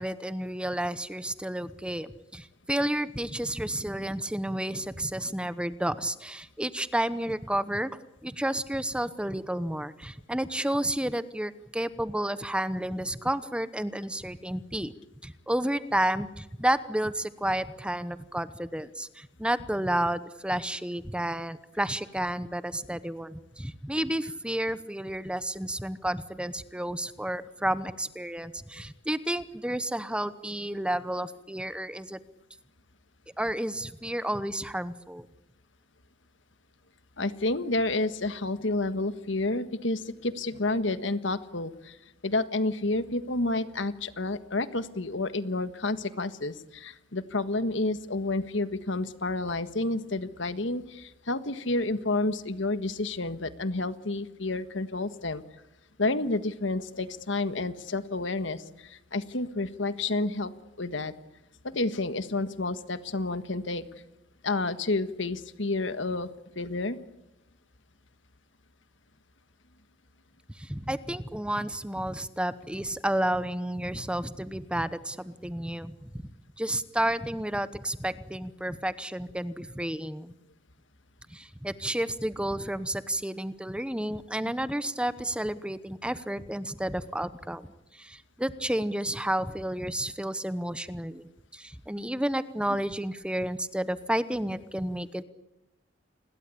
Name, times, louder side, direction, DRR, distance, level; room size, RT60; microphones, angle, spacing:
voice 1, 0.0-7.9 8.2-14.9 15.2-32.2 33.4-35.3 70.6-76.1 76.6-80.3 81.3-87.7 87.9-95.2, right 1 dB, 5° right, 13 dB, 0.9 m, -31 dB
voice 2, 37.2-42.0 42.2-55.4 56.0-60.5 60.8-61.1 61.6-64.0 64.4-66.3 66.5-67.0 84.4-84.5, left 2 dB, 70° left, 11 dB, 1.5 m, -30 dB
29.0 x 21.5 x 8.5 m, 0.92 s
head